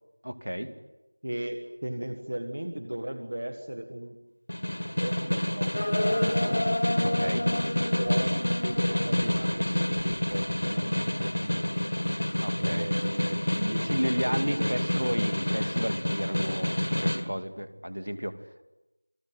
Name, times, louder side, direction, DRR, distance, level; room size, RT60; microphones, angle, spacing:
voice 1, 0.2-0.7 7.0-7.5 12.4-12.9 13.8-18.6, equal, 70° right, 10 dB, 2.6 m, -32 dB
voice 2, 1.2-4.2 5.0-11.9 12.5-14.8, right 1 dB, 30° right, 8 dB, 1.6 m, -37 dB
Snare drum, 4.5-17.2, left 1 dB, 40° left, 1.9 m, -28 dB
sound 1, 5.7-9.5 10.0-10.5, left 1 dB, 20° left, 1.7 m, -31 dB
29.0 x 20.5 x 9.7 m, 1.0 s
figure-of-eight pair, 180°, 0 cm